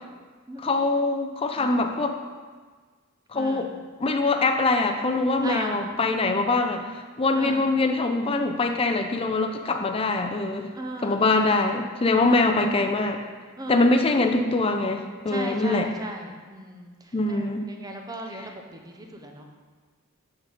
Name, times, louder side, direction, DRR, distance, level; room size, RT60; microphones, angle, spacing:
voice 1, 0.6-2.2 3.3-3.7 4.0-6.8 7.2-10.7 11.0-13.2 13.7-15.9 17.1-17.6, left 2 dB, 25° left, 5 dB, 0.5 m, -23 dB
voice 2, 3.3-3.7 5.4-5.8 7.3-7.7 10.7-11.6 12.2-12.6 13.6-14.0 15.3-19.4, right 1 dB, 20° right, 2 dB, 0.7 m, -36 dB
8.2 x 4.0 x 5.2 m, 1.5 s
head